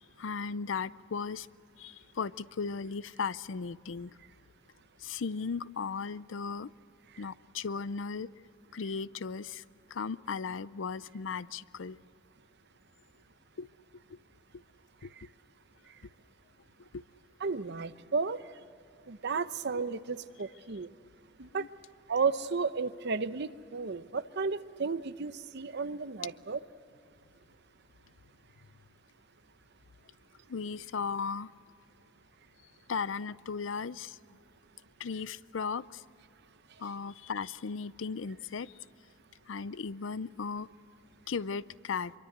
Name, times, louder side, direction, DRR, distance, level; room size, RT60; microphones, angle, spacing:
voice 1, 0.2-1.5 1.8-4.1 5.0-6.7 7.2-8.3 8.7-9.6 9.9-12.0 13.6-13.7 14.1-14.2 15.0-15.1 16.9-17.0 21.6-21.7 30.5-31.5 32.9-34.2 35.0-36.0 36.8-38.7 39.5-40.7 41.3-42.1, left 5 dB, 70° left, 18 dB, 0.5 m, -36 dB
voice 2, 17.4-18.4 19.1-20.9 21.4-21.7 22.1-26.6, right 4 dB, 60° right, 12 dB, 0.8 m, -33 dB
25.0 x 23.5 x 8.0 m, 2.6 s
head